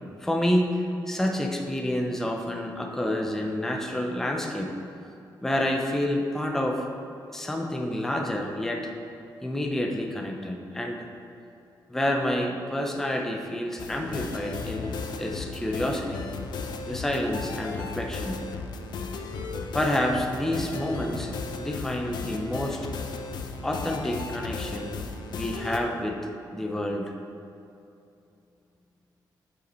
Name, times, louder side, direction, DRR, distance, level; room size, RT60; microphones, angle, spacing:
voice 1, 0.2-4.7 5.4-6.9 7.3-8.9 9.4-11.1 11.9-16.3 16.9-18.4 19.7-22.9 23.6-25.0 25.3-26.3 26.5-27.1, left 1 dB, 5° left, 3 dB, 0.5 m, -28 dB
sound 1, 13.8-25.8, left 4 dB, 65° left, 0.5 m, -35 dB
6.7 x 5.6 x 4.2 m, 2.6 s
wide cardioid pair, 175°, 8 cm